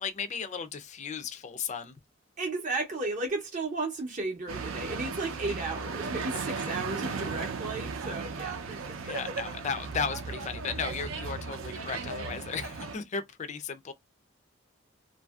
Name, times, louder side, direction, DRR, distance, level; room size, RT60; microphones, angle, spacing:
voice 1, 0.0-1.9 6.3-6.7 9.0-13.9, left 6 dB, 35° left, 0.4 m, -35 dB
voice 2, 2.4-8.8 9.1-9.2, right 3 dB, 40° right, 0.6 m, -34 dB
sound 1, 4.5-13.0, right 4 dB, 85° right, 0.5 m, -36 dB
2.7 x 2.6 x 2.3 m
head